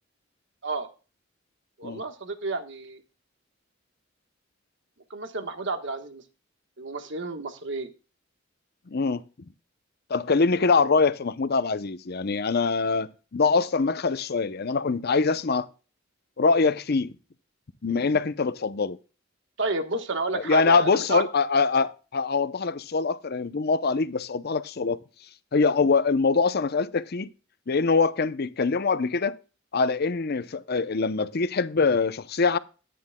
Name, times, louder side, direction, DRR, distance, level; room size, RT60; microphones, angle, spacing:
voice 1, 1.8-3.0 5.1-6.2 6.8-7.9 19.6-21.2, right 3 dB, 70° right, 1.3 m, -31 dB
voice 2, 8.9-9.2 10.1-15.7 16.4-17.1 17.8-19.0 20.3-25.0 25.5-27.3 27.7-29.3 29.7-32.6, left 4 dB, 55° left, 0.7 m, -24 dB
14.0 x 9.4 x 2.2 m
head